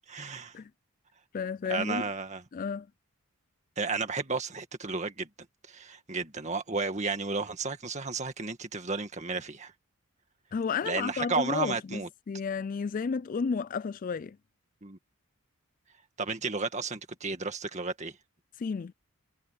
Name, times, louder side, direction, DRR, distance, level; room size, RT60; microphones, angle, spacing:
voice 1, 0.1-0.5 1.7-2.4 3.8-5.3 5.7-9.7 10.8-12.1 14.8-15.0 16.2-18.1, right 4 dB, 30° right, 1.9 m, -33 dB
voice 2, 1.3-2.0 2.5-2.9 10.5-12.0 12.3-14.4 18.6-18.9, left 5 dB, 40° left, 0.3 m, -32 dB
head